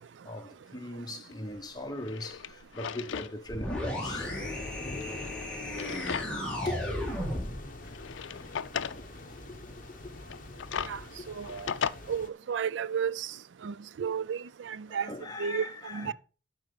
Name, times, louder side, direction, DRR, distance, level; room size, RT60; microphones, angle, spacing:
voice 1, 0.2-4.4 6.3-6.4 6.6-6.8 8.9-9.1 9.5-9.6 10.0-10.2 10.7-10.9 11.7-11.8 14.9-16.1, left 1 dB, 20° left, 1.3 m, -40 dB
Drawer open or close, 1.3-1.4 1.9-3.3 3.7-3.8 4.8-6.6 7.0-7.1 7.8-9.0 10.2-11.9, left 7 dB, 85° left, 0.5 m, -37 dB
sound 1, 3.5-7.7, left 1 dB, 5° left, 2.3 m, -35 dB
sound 2, 4.0-12.3, left 2 dB, 45° left, 1.0 m, -44 dB
voice 2, 11.3-11.7 12.1-13.3 13.6-15.1 15.4-16.1, right 7 dB, 75° right, 0.4 m, -33 dB
12.0 x 5.1 x 5.2 m
head